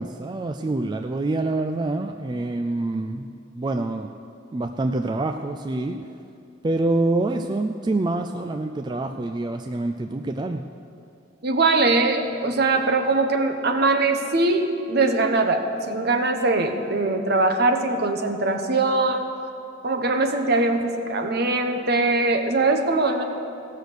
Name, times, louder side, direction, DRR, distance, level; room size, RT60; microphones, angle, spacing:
voice 1, 0.0-3.3 3.6-4.1 4.5-6.0 6.6-10.6, right 2 dB, 20° right, 6 dB, 0.3 m, -26 dB
voice 2, 11.4-19.2 19.8-23.3, right 3 dB, 55° right, 5 dB, 0.9 m, -21 dB
16.0 x 6.6 x 6.5 m, 2.6 s
head